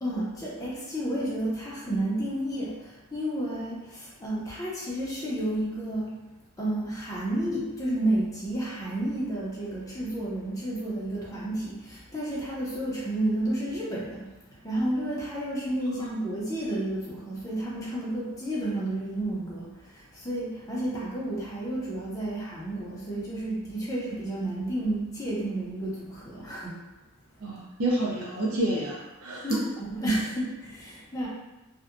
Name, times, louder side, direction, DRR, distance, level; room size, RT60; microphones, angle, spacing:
voice 1, 0.0-6.2 6.6-26.8 29.4-31.3, right 1 dB, 15° left, -6 dB, 0.5 m, -31 dB
voice 2, 27.4-29.6, right 1 dB, 80° right, -4 dB, 0.5 m, -29 dB
2.6 x 2.1 x 2.4 m, 1.1 s
head